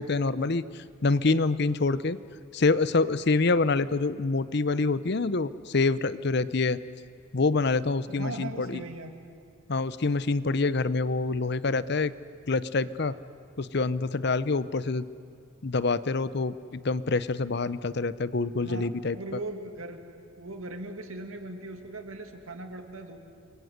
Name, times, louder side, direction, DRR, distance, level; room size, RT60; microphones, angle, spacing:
voice 1, 0.0-2.2 2.5-6.8 7.3-8.8 9.7-12.1 12.5-13.1 13.6-15.1 15.6-19.4, left 3 dB, 55° left, 15 dB, 0.7 m, -26 dB
voice 2, 8.1-9.1 18.6-20.0 20.4-23.2, right 2 dB, 90° right, 5 dB, 2.5 m, -39 dB
29.5 x 23.0 x 8.0 m, 2.2 s
head